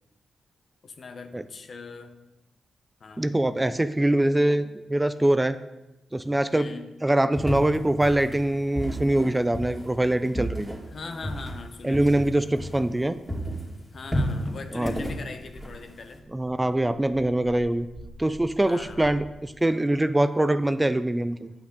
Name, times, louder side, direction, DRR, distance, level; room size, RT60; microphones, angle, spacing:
voice 1, 0.8-2.2 3.0-3.3 6.5-6.9 10.9-12.3 13.9-16.3 18.6-19.2, left 4 dB, 60° left, 7 dB, 0.9 m, -41 dB
voice 2, 3.2-5.6 6.1-6.7 7.0-10.8 11.8-13.2 14.7-14.9 16.3-17.9 18.2-21.5, right 1 dB, 15° right, 12 dB, 0.5 m, -23 dB
sound 1, 7.3-13.0 13.3-16.2, equal, 15° left, 2.6 m, -32 dB
sound 2, 15.4-19.4, right 2 dB, 85° right, 1.5 m, -48 dB
9.6 x 6.0 x 3.9 m, 0.96 s
supercardioid pair, 45°, 0 cm